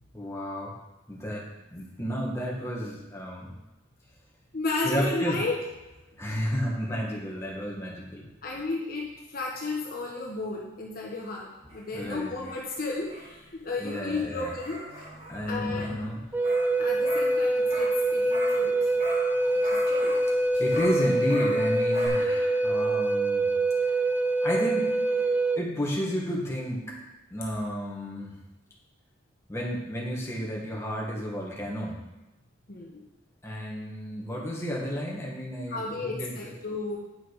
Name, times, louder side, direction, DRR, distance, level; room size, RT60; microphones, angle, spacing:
voice 1, 0.1-0.7 1.1-3.5 4.8-5.4 6.2-8.2 11.9-12.3 13.8-14.5 15.3-16.2 20.6-23.5 23.8-24.0 24.4-27.0 27.3-28.3 29.5-32.0 33.4-36.5, equal, 15° left, -4 dB, 1.7 m, -32 dB
voice 2, 4.5-5.8 8.4-14.9 15.5-16.0 16.8-18.9 19.6-20.2 32.7-33.0 35.7-37.0, left 3 dB, 50° left, -2 dB, 1.2 m, -33 dB
sound 1, 11.7-18.7 19.0-22.1, equal, 30° right, 2.3 m, -41 dB
Wind instrument woodwind instrument, 16.3-25.6, right 2 dB, 10° right, 0.4 m, -25 dB
9.1 x 5.8 x 4.8 m, 1.0 s
head